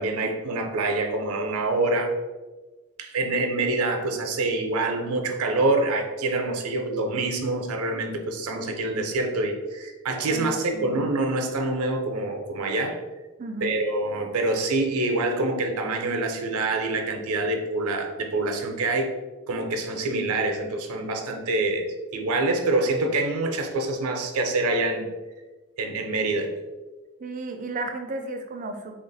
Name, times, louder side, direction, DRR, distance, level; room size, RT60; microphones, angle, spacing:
voice 1, 0.0-2.1 3.0-13.0 13.6-19.1 19.5-21.8 22.1-25.1 25.8-26.5, right 2 dB, 85° right, 4 dB, 0.5 m, -26 dB
voice 2, 10.3-11.0 13.4-13.7 27.2-29.0, right 2 dB, 35° right, 5 dB, 0.4 m, -34 dB
3.3 x 2.4 x 3.9 m, 1.2 s
head